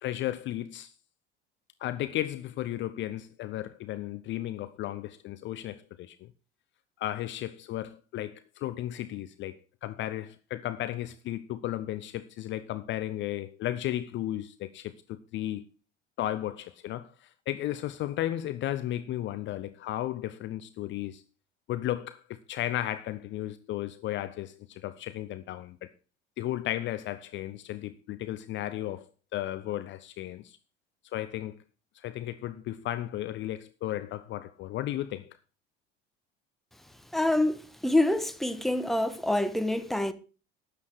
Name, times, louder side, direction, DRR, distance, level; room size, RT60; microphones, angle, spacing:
voice 1, 0.0-0.9 1.8-6.3 7.0-15.7 16.2-21.2 21.7-25.9 26.4-29.0 29.3-30.6 31.1-31.6 32.0-35.4, left 13 dB, 40° left, 0.7 m, -34 dB
voice 2, 37.1-40.1, left 1 dB, ahead, 1.2 m, -26 dB
12.5 x 8.7 x 4.6 m
figure-of-eight pair, 65°, 31 cm